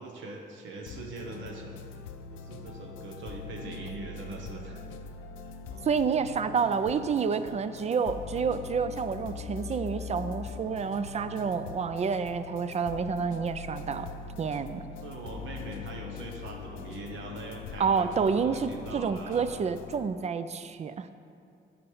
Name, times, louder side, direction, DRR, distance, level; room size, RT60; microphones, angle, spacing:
voice 1, 0.0-1.7 2.3-4.8 5.4-5.9 15.0-19.5, right 2 dB, 70° right, 1 dB, 1.0 m, -42 dB
sound 1, 0.9-20.1, left 6 dB, 90° left, 0.5 m, -42 dB
voice 2, 5.8-14.1 14.4-14.9 17.8-21.1, right 6 dB, 35° right, 12 dB, 0.4 m, -29 dB
8.8 x 5.3 x 4.8 m, 2.4 s
cardioid pair, 90°, 20 cm